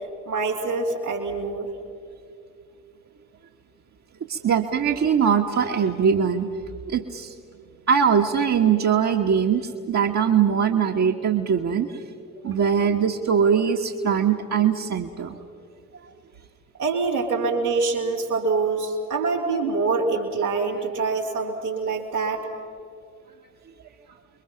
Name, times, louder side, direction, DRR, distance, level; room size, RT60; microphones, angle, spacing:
voice 1, 0.2-1.7 12.4-12.6 16.8-22.4, right 4 dB, 90° right, -4 dB, 3.0 m, -25 dB
voice 2, 4.3-6.5 6.9-7.3 7.9-11.9 12.4-15.4, right 7 dB, 40° right, 1 dB, 1.4 m, -21 dB
30.0 x 22.5 x 5.9 m, 2.4 s
figure-of-eight pair, 50°, 43 cm